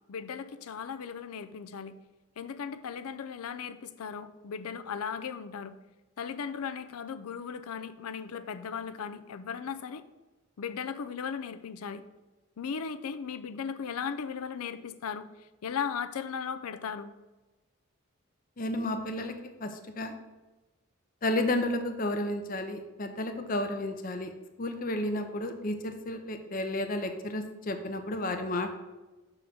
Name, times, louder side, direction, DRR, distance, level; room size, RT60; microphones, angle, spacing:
voice 1, 0.1-2.0 2.4-5.8 6.2-10.0 10.6-12.0 12.6-15.3 15.6-17.1, left 6 dB, 85° left, 12 dB, 0.5 m, -37 dB
voice 2, 18.6-19.3 19.6-19.7 20.0-20.1 21.2-24.3 24.6-28.7, left 1 dB, 40° left, 7 dB, 0.5 m, -32 dB
6.3 x 3.8 x 5.9 m, 1.1 s
head